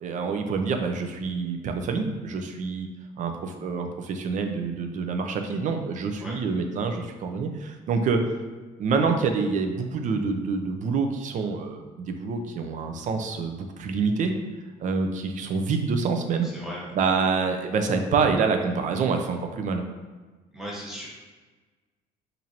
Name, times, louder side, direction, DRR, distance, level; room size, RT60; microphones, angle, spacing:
voice 1, 0.0-2.9 3.2-8.2 8.8-14.3 14.8-16.5 17.0-19.8, right 4 dB, 50° right, 5 dB, 0.5 m, -26 dB
voice 2, 16.4-17.0 20.5-21.1, equal, 5° right, -5 dB, 1.2 m, -37 dB
4.4 x 2.6 x 2.8 m, 1.3 s
cardioid pair, 110°, 17 cm